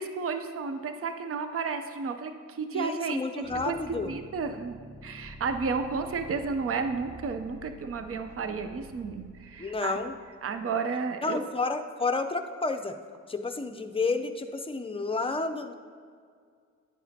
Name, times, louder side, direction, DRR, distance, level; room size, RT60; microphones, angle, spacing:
voice 1, 0.0-4.8 5.0-10.0 10.4-11.4, right 5 dB, 50° right, 8 dB, 0.6 m, -32 dB
voice 2, 2.7-4.1 9.6-10.1 11.2-12.9 13.3-15.7, left 3 dB, 20° left, 7 dB, 0.6 m, -30 dB
sound 1, 3.4-10.6, equal, 5° right, 1.4 m, -49 dB
11.0 x 8.2 x 2.8 m, 2.1 s
cardioid pair, 70°, 30 cm